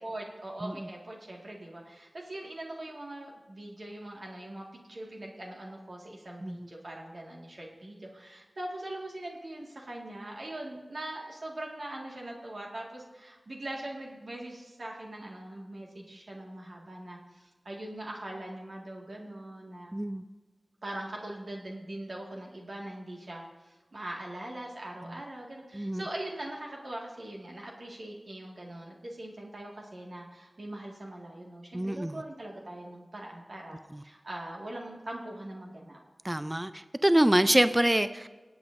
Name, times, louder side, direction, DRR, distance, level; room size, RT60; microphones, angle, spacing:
voice 1, 0.0-19.9 20.8-36.0, right 1 dB, 65° right, -2 dB, 1.8 m, -41 dB
voice 2, 19.9-20.2 25.7-26.0 31.7-32.2 36.2-38.3, right 1 dB, 20° right, 11 dB, 0.4 m, -25 dB
23.5 x 8.0 x 2.6 m, 1.2 s
cardioid pair, 45°, 0 cm